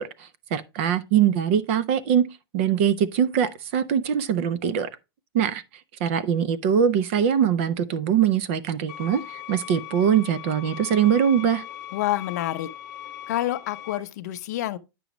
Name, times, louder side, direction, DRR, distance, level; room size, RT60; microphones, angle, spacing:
voice 1, 0.0-2.3 2.5-4.9 5.3-5.6 6.0-11.6, right 8 dB, 30° right, 0.4 m, -22 dB
sound 1, 8.9-14.0, left 13 dB, 25° left, 0.9 m, -39 dB
voice 2, 11.9-12.7 13.3-14.8, left 14 dB, 40° left, 0.6 m, -28 dB
9.1 x 6.1 x 3.0 m
supercardioid pair, 175°, 13 cm